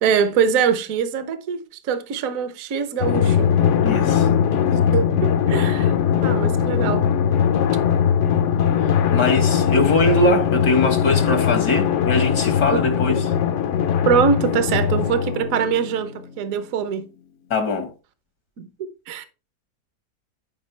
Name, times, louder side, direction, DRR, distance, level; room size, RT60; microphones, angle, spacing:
voice 1, 0.0-3.5 4.9-6.0 6.2-7.1 12.7-12.8 14.1-17.1 18.6-18.7 19.1-19.2, right 7 dB, 60° right, 1.2 m, -23 dB
Drum, 3.0-16.1, left 8 dB, 60° left, 0.8 m, -20 dB
voice 2, 3.8-4.4 8.8-13.3 17.5-17.9, left 2 dB, 85° left, 2.3 m, -21 dB
11.5 x 5.0 x 3.3 m
omnidirectional pair, 1.8 m